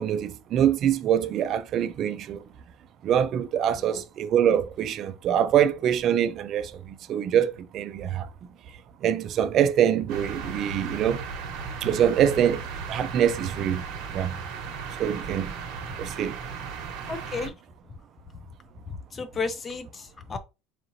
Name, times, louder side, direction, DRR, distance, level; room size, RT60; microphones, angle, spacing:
voice 1, 0.0-2.4 3.0-8.3 9.0-11.2 11.8-12.6 12.9-13.8 14.1-14.4 15.0-15.5 16.0-16.4, right 9 dB, 35° right, 0.4 m, -24 dB
sound 1, 10.1-17.5, right 5 dB, 60° right, 1.2 m, -36 dB
voice 2, 17.1-17.5 18.9-20.4, left 4 dB, 20° left, 0.5 m, -33 dB
4.9 x 3.0 x 2.6 m
cardioid pair, 170°, 0 cm